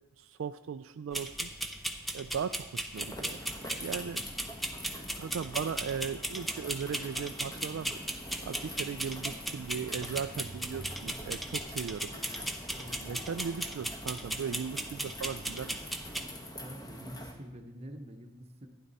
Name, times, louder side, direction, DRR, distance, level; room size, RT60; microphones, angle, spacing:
voice 1, 0.2-1.5 2.1-4.2 5.2-12.1 13.0-15.9, right 7 dB, 65° right, 9 dB, 0.3 m, -38 dB
sound 1, 1.1-16.3, right 1 dB, ahead, 0.6 m, -38 dB
sound 2, 2.9-17.3, equal, 15° left, 1.2 m, -45 dB
voice 2, 12.7-13.3 16.6-18.7, equal, 30° right, 4 dB, 1.0 m, -47 dB
15.0 x 10.0 x 4.1 m, 1.1 s
head